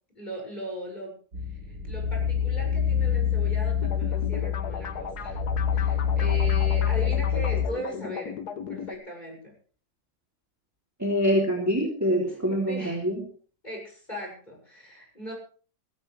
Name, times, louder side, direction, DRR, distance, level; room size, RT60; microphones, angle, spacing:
voice 1, 0.2-1.2 1.7-5.4 5.7-8.4 8.7-9.5 12.2-12.4 12.7-13.1 13.6-15.3, equal, 25° left, -1 dB, 7.2 m, -38 dB
sound 1, 1.3-7.7, left 8 dB, 75° right, 3.7 m, -26 dB
sound 2, 3.8-8.9, left 7 dB, 75° left, 1.7 m, -37 dB
voice 2, 11.0-13.2, equal, 10° right, -2 dB, 3.4 m, -25 dB
17.5 x 17.0 x 3.5 m, 0.40 s
omnidirectional pair, 1.7 m